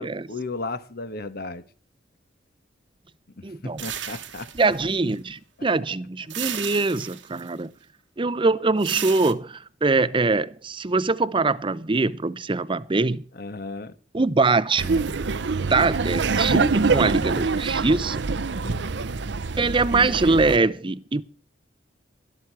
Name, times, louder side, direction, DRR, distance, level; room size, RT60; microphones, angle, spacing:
voice 1, 0.0-1.6 3.4-4.5 13.3-13.9 18.6-18.9, left 3 dB, 55° left, 1.4 m, -35 dB
voice 2, 3.4-3.8 4.5-7.7 8.2-13.2 14.1-15.1 15.6-18.2 19.6-21.2, right 3 dB, 30° right, 0.7 m, -23 dB
sound 1, 3.8-5.2 6.3-7.5 8.8-9.3, right 10 dB, 90° right, 1.5 m, -34 dB
Laughter, 14.8-20.6, right 4 dB, 70° right, 0.7 m, -25 dB
13.0 x 12.5 x 4.7 m
head